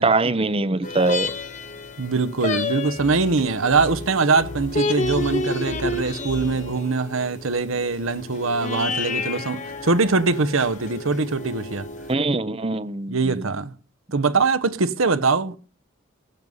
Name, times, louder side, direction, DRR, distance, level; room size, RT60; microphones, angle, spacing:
voice 1, 0.0-1.3 12.1-13.5, right 3 dB, 25° right, 0.8 m, -22 dB
sound 1, 0.8-12.1, left 3 dB, 35° left, 1.3 m, -31 dB
voice 2, 2.0-11.9 13.1-13.7 14.1-15.6, right 4 dB, 80° right, 1.1 m, -22 dB
sound 2, 2.9-6.8, equal, 55° right, 1.9 m, -38 dB
17.5 x 8.1 x 5.5 m
head